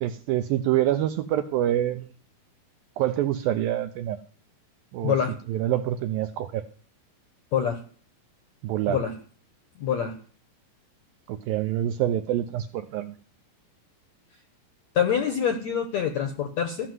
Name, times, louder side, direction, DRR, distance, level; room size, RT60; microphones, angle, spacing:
voice 1, 0.0-2.0 3.0-4.2 4.9-5.2 5.5-6.6 8.6-9.0 11.3-13.1, right 12 dB, 80° right, 8 dB, 2.1 m, -26 dB
voice 2, 9.8-10.1 15.0-16.9, left 8 dB, 65° left, 8 dB, 1.7 m, -25 dB
14.5 x 5.9 x 9.3 m, 0.43 s
omnidirectional pair, 4.8 m